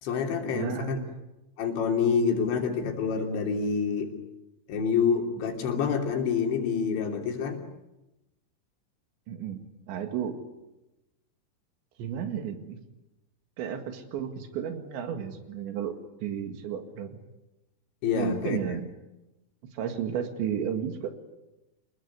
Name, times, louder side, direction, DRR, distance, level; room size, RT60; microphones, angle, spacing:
voice 1, 0.0-1.0 1.6-4.1 4.7-7.6 18.0-18.6, left 6 dB, 90° left, 3 dB, 5.4 m, -27 dB
voice 2, 0.5-1.1 9.3-9.6 9.9-10.4 12.0-12.8 13.6-17.2 18.1-18.9 19.7-21.1, right 8 dB, 90° right, 6 dB, 4.3 m, -33 dB
28.5 x 22.0 x 9.6 m, 0.99 s
omnidirectional pair, 5.0 m